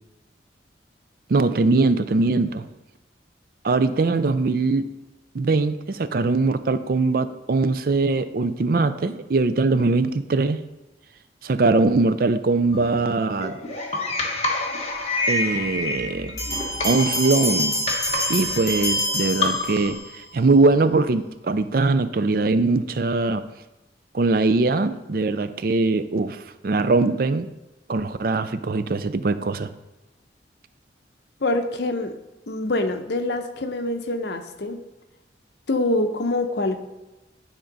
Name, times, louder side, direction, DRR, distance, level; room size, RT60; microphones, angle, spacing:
voice 1, 1.3-2.7 3.6-4.9 5.3-10.6 11.4-13.6 15.3-16.3 16.8-17.8 18.3-23.4 24.1-27.5 27.9-29.7, right 3 dB, 55° right, 12 dB, 0.4 m, -21 dB
sound 1, 12.7-20.0, left 2 dB, 35° left, 1.1 m, -28 dB
Bell, 16.4-20.2, equal, 20° left, 2.0 m, -26 dB
voice 2, 31.4-32.1 32.5-34.8 35.7-36.8, left 2 dB, 70° left, 7 dB, 0.7 m, -25 dB
10.0 x 3.7 x 5.3 m, 1.0 s
head